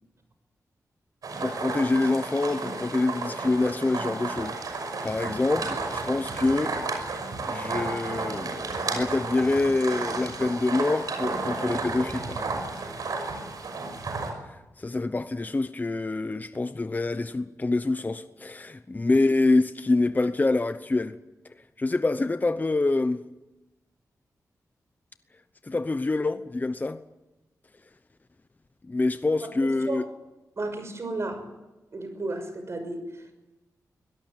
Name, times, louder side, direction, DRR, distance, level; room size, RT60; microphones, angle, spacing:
sound 1, 1.2-14.3, right 3 dB, 75° right, 5.9 m, -32 dB
voice 1, 1.4-6.7 7.5-12.6 14.5-21.2 21.8-23.2 25.6-27.0 28.8-30.0, left 2 dB, 25° left, 0.9 m, -26 dB
voice 2, 30.6-31.4 31.9-33.0, right 2 dB, 45° right, 6.2 m, -32 dB
24.0 x 18.0 x 9.3 m
wide cardioid pair, 90°, 6 cm